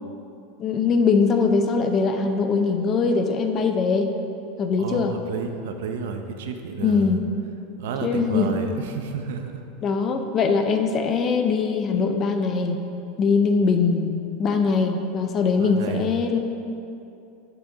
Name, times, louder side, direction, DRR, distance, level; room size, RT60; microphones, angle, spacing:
voice 1, 0.6-4.1 4.6-5.1 6.8-7.2 8.0-8.6 9.8-12.8 13.2-14.1 14.4-16.4, left 5 dB, 25° left, 6 dB, 0.4 m, -21 dB
voice 2, 4.8-7.2 7.8-9.6 15.6-16.1, right 5 dB, 75° right, 5 dB, 0.6 m, -31 dB
7.6 x 5.9 x 4.0 m, 2.7 s
supercardioid pair, 175°, 0 cm